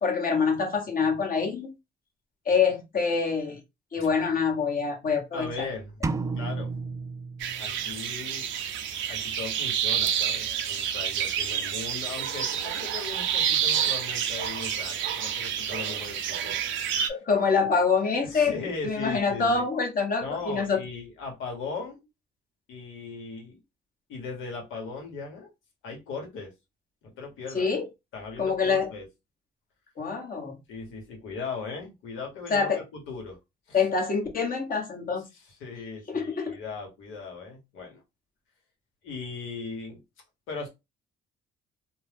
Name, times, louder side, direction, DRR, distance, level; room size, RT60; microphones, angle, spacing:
voice 1, 0.0-1.7 2.5-3.6 3.9-5.7 17.1-18.5 18.8-20.8 27.5-27.8 28.4-28.9 30.0-30.6 32.5-32.8 33.7-35.3 36.1-36.5, left 5 dB, 45° left, 2 dB, 1.0 m, -25 dB
voice 2, 5.3-6.0 6.3-6.7 7.6-8.5 9.1-16.5 18.2-19.6 20.2-22.0 22.7-23.6 24.1-25.5 25.8-26.5 27.0-27.7 28.1-29.0 30.7-33.4 33.7-33.8 35.3-38.0 39.0-40.0 40.5-40.7, left 4 dB, 85° left, 1 dB, 1.2 m, -38 dB
sound 1, 6.0-8.0, right 3 dB, 15° right, 0.3 m, -32 dB
sound 2, 7.4-17.1, right 9 dB, 70° right, 0.5 m, -29 dB
2.7 x 2.1 x 3.3 m, 0.23 s
cardioid pair, 90°, 20 cm